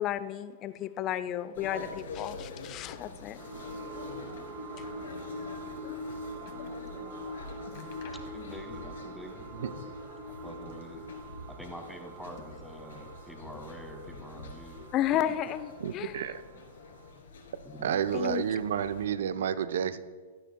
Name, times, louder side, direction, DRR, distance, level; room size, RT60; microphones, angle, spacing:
voice 1, 0.0-3.4 4.8-4.9 14.9-16.2 18.1-18.4, left 11 dB, 35° left, 14 dB, 0.6 m, -32 dB
sound 1, 1.5-19.1, left 3 dB, 70° left, 2.4 m, -46 dB
sound 2, 3.4-16.5 17.0-17.1, equal, 40° right, 3.7 m, -44 dB
sound 3, 6.4-6.9 7.2-7.3 7.6-8.9 9.2-10.1 10.5-11.4 12.0-13.0 13.5-14.2 14.5-15.2 15.9-16.0, left 6 dB, 50° left, 1.7 m, -55 dB
voice 2, 8.2-9.5 10.2-11.0 11.5-14.9 15.3-15.5 16.5-16.6 17.6-18.0, equal, ahead, 4 dB, 1.7 m, -46 dB
voice 3, 15.8-16.4 17.8-20.0, right 8 dB, 65° right, 13 dB, 0.6 m, -30 dB
16.5 x 12.5 x 2.3 m, 1.5 s
figure-of-eight pair, 110°, 0 cm